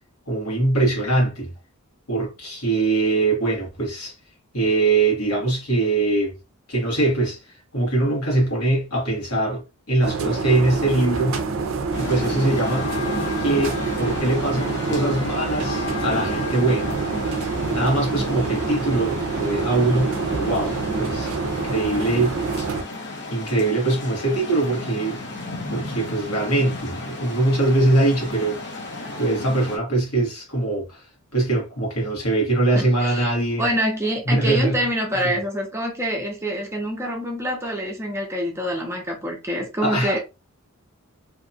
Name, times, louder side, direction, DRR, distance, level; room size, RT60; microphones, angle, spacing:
voice 1, 0.3-1.5 2.1-4.1 4.5-6.4 6.7-7.4 7.7-11.4 12.0-12.9 13.4-17.0 17.7-22.4 23.3-25.2 25.7-28.6 29.2-31.0 31.3-33.7 34.2-34.8 35.1-35.4 39.8-40.1, right 2 dB, 75° left, 1.3 m, -22 dB
sound 1, 10.0-22.8, right 4 dB, 60° right, 0.4 m, -27 dB
sound 2, 11.9-29.8, left 2 dB, 50° left, 0.8 m, -33 dB
voice 2, 32.7-33.3 33.6-40.2, equal, 10° right, 0.6 m, -26 dB
2.8 x 2.3 x 2.6 m
head